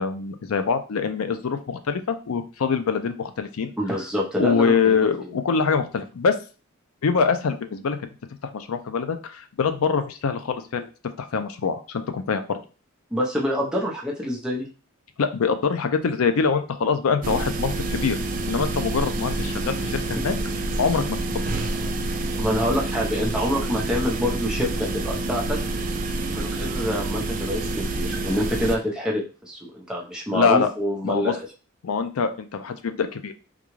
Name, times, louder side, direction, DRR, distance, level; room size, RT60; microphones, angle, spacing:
voice 1, 0.0-3.7 4.4-6.4 7.0-8.0 8.5-10.9 11.2-12.6 15.2-18.2 18.5-20.3 20.8-21.2 30.3-30.7 31.0-31.4 31.8-33.3, left 5 dB, 85° left, 9 dB, 0.5 m, -24 dB
voice 2, 3.8-5.3 13.1-14.7 20.1-20.2 22.4-25.6 26.3-31.5, equal, 5° right, -3 dB, 0.7 m, -26 dB
sound 1, 17.2-28.8, right 2 dB, 40° right, 0.4 m, -28 dB
3.7 x 2.3 x 3.1 m, 0.34 s
head